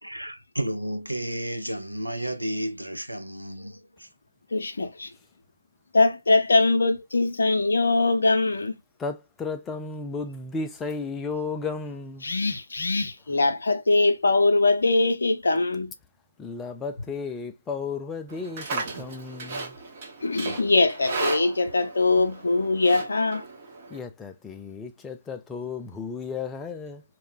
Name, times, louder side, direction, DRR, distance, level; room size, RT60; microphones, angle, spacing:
voice 1, 0.0-4.1, right 1 dB, 85° right, 0.6 m, -32 dB
voice 2, 4.5-5.1 5.9-8.7 12.2-15.9 20.2-23.4, left 3 dB, 60° left, 0.6 m, -22 dB
voice 3, 9.0-12.3 16.4-19.8 23.9-27.0, left 4 dB, 10° left, 0.3 m, -34 dB
Livestock farm animals working animals, 18.3-24.0, right 3 dB, 30° right, 0.8 m, -35 dB
2.3 x 2.1 x 3.7 m
figure-of-eight pair, 140°, 0 cm